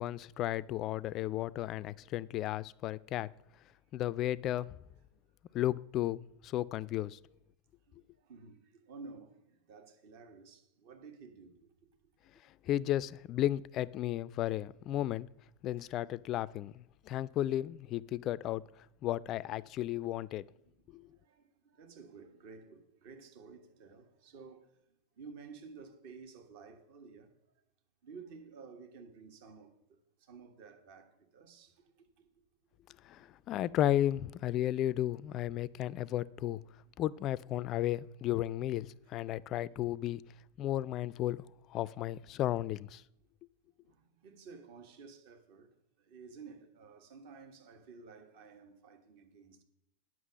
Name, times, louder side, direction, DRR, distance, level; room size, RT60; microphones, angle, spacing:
voice 1, 0.0-3.3 3.9-4.8 5.5-7.2 12.6-15.3 15.6-18.7 19.0-20.5 20.9-21.0 33.0-36.6 37.0-40.2 40.6-41.4 41.7-43.0, left 13 dB, 40° left, 0.3 m, -34 dB
voice 2, 7.9-11.9 15.8-15.9 19.8-20.0 20.2-24.8 25.2-27.3 28.0-32.3 33.1-33.3 43.8-49.6, right 5 dB, 55° right, 1.4 m, -53 dB
9.1 x 6.1 x 7.3 m
figure-of-eight pair, 90°, 0 cm